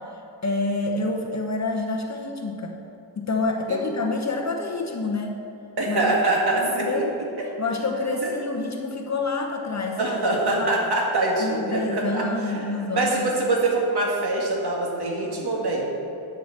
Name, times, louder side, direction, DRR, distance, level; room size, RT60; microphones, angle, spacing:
voice 1, 0.4-2.8 3.2-5.4 5.9-6.1 6.5-7.1 7.6-10.2 10.5-10.7 11.4-13.3, left 3 dB, 35° left, 2 dB, 0.9 m, -27 dB
voice 2, 5.8-7.0 8.2-8.3 10.0-15.9, right 2 dB, 50° right, -2 dB, 2.1 m, -24 dB
10.5 x 4.9 x 7.3 m, 2.7 s
wide cardioid pair, 120°, 49 cm